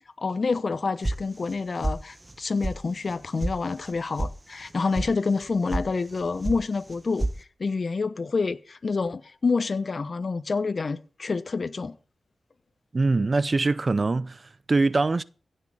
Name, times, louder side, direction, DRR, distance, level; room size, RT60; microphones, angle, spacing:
voice 1, 0.2-7.3 7.6-12.0, left 4 dB, 55° left, 1.0 m, -28 dB
sound 1, 1.0-1.6 1.8-2.4 2.6-2.7 3.1-3.5 3.8-4.3 4.6-5.1 5.4-5.9 6.1-6.6 6.9-7.4, right 2 dB, 25° right, 1.3 m, -29 dB
voice 2, 12.9-15.2, right 3 dB, 45° right, 0.6 m, -23 dB
16.0 x 6.7 x 7.2 m
cardioid pair, 65°, 0 cm